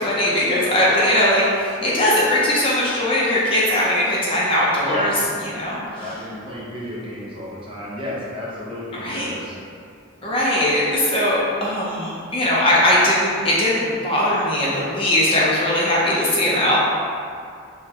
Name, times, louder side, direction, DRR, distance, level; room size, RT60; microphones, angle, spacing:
voice 1, 0.0-6.2 8.9-9.3 10.2-16.8, left 1 dB, 25° left, -7 dB, 0.6 m, -20 dB
voice 2, 4.8-5.3 6.0-9.5, left 1 dB, 25° right, -7 dB, 0.8 m, -32 dB
5.7 x 2.2 x 2.8 m, 2.3 s
head